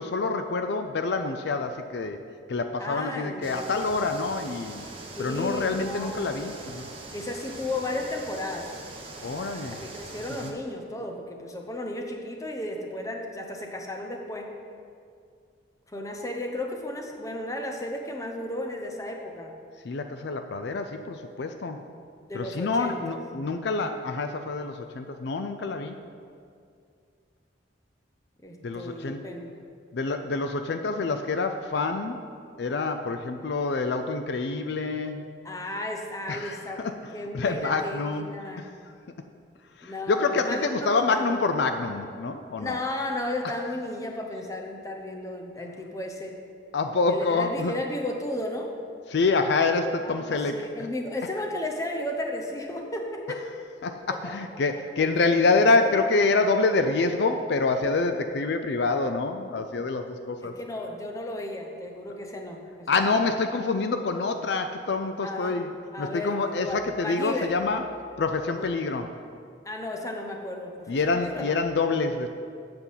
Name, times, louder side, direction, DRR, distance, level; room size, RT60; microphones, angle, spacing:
voice 1, 0.0-2.2 2.5-4.9 5.2-6.9 9.2-9.8 10.4-10.6 19.8-21.8 22.3-26.0 28.6-29.2 29.9-32.2 32.6-35.3 36.3-36.9 37.3-38.3 38.6-38.7 39.8-42.8 46.7-47.8 49.1-50.9 53.8-60.5 62.9-65.7 66.0-67.8 68.2-69.1 70.9-72.3, left 3 dB, 65° left, 7 dB, 0.4 m, -26 dB
voice 2, 2.8-4.0 5.2-6.3 7.1-8.7 9.5-14.5 15.9-19.5 22.3-23.5 28.4-29.5 35.4-36.8 37.1-38.7 39.8-41.4 42.6-46.3 47.1-48.7 50.0-53.5 54.1-54.3 60.4-63.1 65.2-65.6 65.9-67.5 68.6-68.7 69.6-71.5, left 1 dB, 20° left, 2 dB, 0.8 m, -34 dB
sound 1, 3.4-10.5, right 2 dB, 30° right, 1.1 m, -42 dB
8.2 x 6.8 x 5.7 m, 2.3 s
head